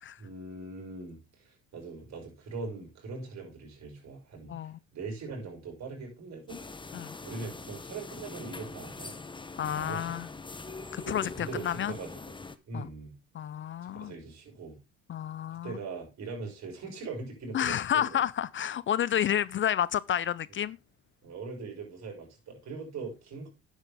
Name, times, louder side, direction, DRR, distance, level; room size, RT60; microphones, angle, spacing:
voice 1, 0.2-6.6 7.2-9.2 9.7-10.1 11.0-12.4 12.7-13.1 13.9-14.8 15.6-18.2 21.2-23.5, right 4 dB, 60° right, 6.0 m, -41 dB
voice 2, 4.5-4.8 6.9-7.2 9.6-10.3 10.9-12.0 12.7-12.9 13.3-14.1 15.1-15.8 17.5-20.8, left 10 dB, 40° left, 0.5 m, -30 dB
sound 1, 6.5-12.6, left 3 dB, 15° left, 1.0 m, -43 dB
9.8 x 8.2 x 3.5 m
hypercardioid pair, 65°, 31 cm